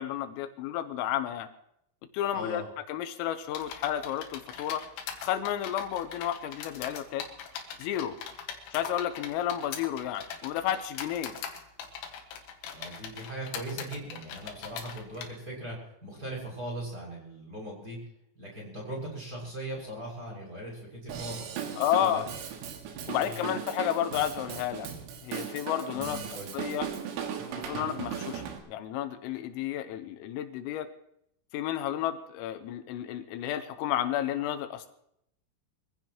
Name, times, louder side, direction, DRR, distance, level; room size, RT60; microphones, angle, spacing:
voice 1, 0.0-1.5 2.1-2.6 2.9-4.8 5.2-7.3 7.8-8.2 8.7-11.4 21.8-22.3 23.1-24.9 25.2-26.2 26.5-26.9 27.6-30.9 31.5-34.9, left 11 dB, 85° left, 9 dB, 3.6 m, -31 dB
voice 2, 2.3-2.6 12.7-15.8 16.0-18.0 18.3-22.2 23.2-23.5 25.9-26.5, right 1 dB, 20° right, -3 dB, 6.4 m, -39 dB
sound 1, 3.6-15.3, left 7 dB, 70° left, 3.9 m, -41 dB
Drum kit / Drum, 21.1-28.6, right 8 dB, 85° right, 4.4 m, -37 dB
24.5 x 15.5 x 3.0 m, 0.76 s
omnidirectional pair, 5.9 m